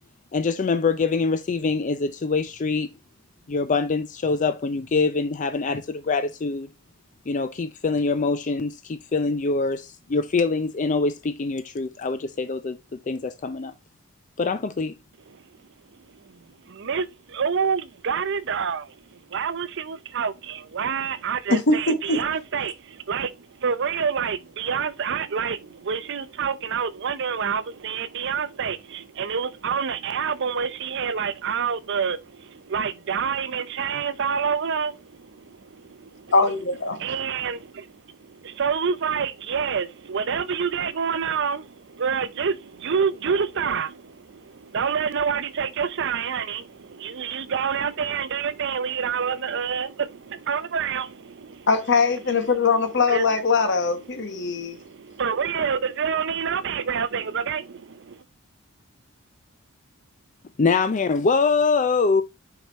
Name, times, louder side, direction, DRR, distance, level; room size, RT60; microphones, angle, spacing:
voice 1, 0.3-2.9 3.5-6.7 7.3-13.7 14.4-14.9 60.6-62.2, left 4 dB, 35° left, 0.4 m, -24 dB
voice 2, 16.1-36.3 36.9-51.7 53.1-53.3 54.4-58.2, right 6 dB, 55° right, 0.6 m, -28 dB
voice 3, 21.5-22.2 36.3-37.0 51.7-54.8, left 4 dB, 55° left, 1.0 m, -21 dB
6.6 x 4.9 x 4.0 m
head